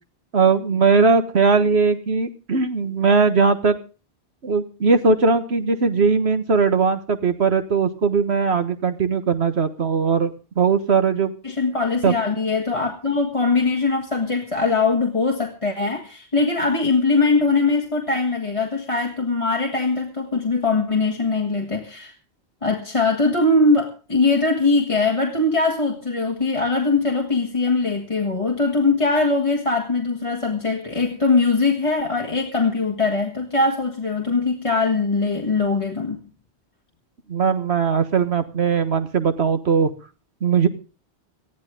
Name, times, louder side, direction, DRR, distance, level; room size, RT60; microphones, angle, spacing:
voice 1, 0.3-3.8 4.4-11.3 12.0-12.1 37.3-39.9 40.4-40.7, right 5 dB, 75° right, 9 dB, 1.8 m, -19 dB
voice 2, 11.4-22.1 22.6-36.2, left 3 dB, 30° left, 1 dB, 1.8 m, -21 dB
19.5 x 14.0 x 3.7 m, 0.34 s
omnidirectional pair, 1.1 m